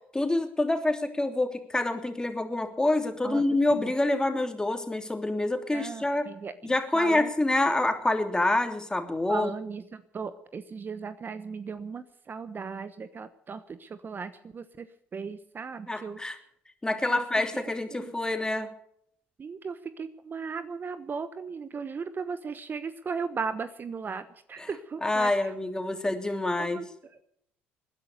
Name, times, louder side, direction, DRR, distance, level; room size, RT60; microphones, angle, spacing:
voice 1, 0.1-6.3 6.6-9.5 15.9-16.4 16.8-18.7 24.6-24.7 25.0-26.8, left 2 dB, 15° left, 6 dB, 3.1 m, -27 dB
voice 2, 5.7-7.3 9.3-14.9 15.1-16.2 17.1-17.2 17.5-17.6 17.9-18.1 19.4-25.3 26.6-26.8, right 5 dB, 40° right, 12 dB, 1.0 m, -37 dB
20.0 x 10.5 x 6.7 m, 0.70 s
hypercardioid pair, 60°, 5 cm